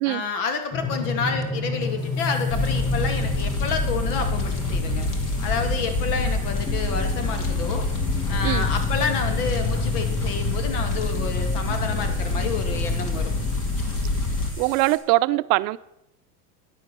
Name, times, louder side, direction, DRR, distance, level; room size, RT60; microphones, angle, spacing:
voice 1, 0.1-5.1 5.4-7.8 8.3-13.3, left 5 dB, 75° left, 7 dB, 2.3 m, -29 dB
sound 1, 0.7-13.6, left 3 dB, 10° left, 1.5 m, -31 dB
sound 2, 1.8-15.0, equal, 25° left, 4.1 m, -44 dB
Fire, 2.5-14.5, left 2 dB, 40° left, 2.2 m, -26 dB
voice 2, 14.6-15.8, right 20 dB, 65° right, 15 dB, 0.6 m, -22 dB
10.0 x 8.1 x 6.8 m, 0.86 s
supercardioid pair, 115°, 46 cm